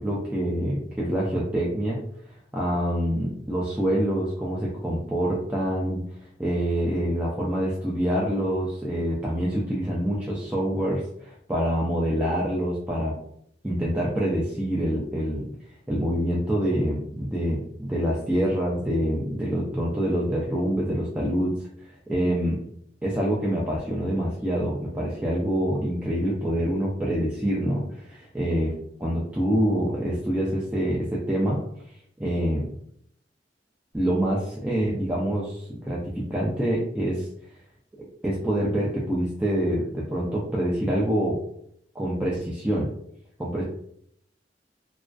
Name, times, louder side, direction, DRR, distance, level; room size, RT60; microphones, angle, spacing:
voice 1, 0.0-2.0 2.5-6.0 6.4-13.2 13.6-15.5 15.9-21.6 22.1-22.6 23.0-28.7 29.0-31.6 32.2-32.7 33.9-37.3 38.2-41.4 41.9-42.9 43.4-43.6, equal, 10° right, -5 dB, 0.3 m, -26 dB
2.4 x 2.2 x 2.2 m, 0.69 s
head